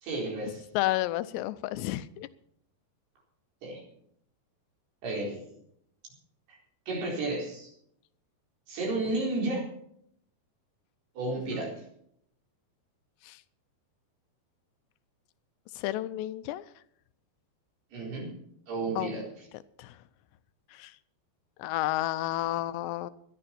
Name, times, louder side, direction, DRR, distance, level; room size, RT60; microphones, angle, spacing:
voice 1, 0.0-0.7 3.6-3.8 5.0-5.5 6.5-6.6 6.9-7.7 8.7-9.7 11.2-11.8 17.9-18.3 18.7-19.3, right 2 dB, 70° right, -2 dB, 6.3 m, -32 dB
voice 2, 0.7-2.3 11.5-11.6 13.2-13.4 15.8-16.6 19.0-19.1 19.8-19.9 20.7-20.9 21.6-23.1, left 15 dB, 90° left, 14 dB, 2.9 m, -31 dB
18.0 x 13.0 x 4.4 m, 0.70 s
omnidirectional pair, 4.8 m